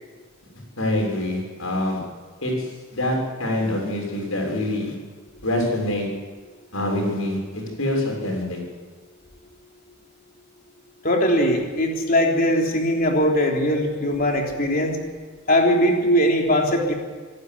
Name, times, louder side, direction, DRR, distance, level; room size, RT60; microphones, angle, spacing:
voice 1, 0.8-2.0 2.4-4.9 5.4-6.0 6.7-8.6, left 1 dB, 75° left, 0 dB, 6.7 m, -25 dB
voice 2, 11.0-15.0 15.5-16.9, equal, 40° left, 1 dB, 3.5 m, -20 dB
25.5 x 12.0 x 9.6 m, 1.5 s
head